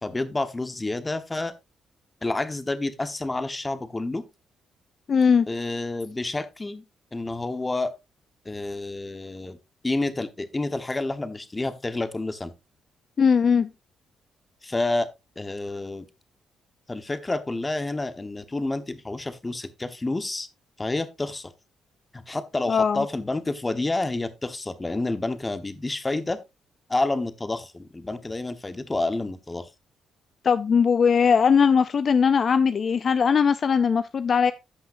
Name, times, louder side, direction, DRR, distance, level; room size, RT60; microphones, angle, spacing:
voice 1, 0.0-1.5 2.2-4.2 5.5-6.8 7.1-7.9 8.4-9.6 9.8-12.5 14.6-15.1 15.4-16.1 16.9-20.5 20.8-21.5 22.1-26.4 26.9-29.7, left 2 dB, 20° left, 1.1 m, -29 dB
voice 2, 5.1-5.5 13.2-13.7 22.7-23.0 30.4-34.5, left 6 dB, 45° left, 0.4 m, -20 dB
14.5 x 5.7 x 2.6 m
cardioid pair, 90°, 0 cm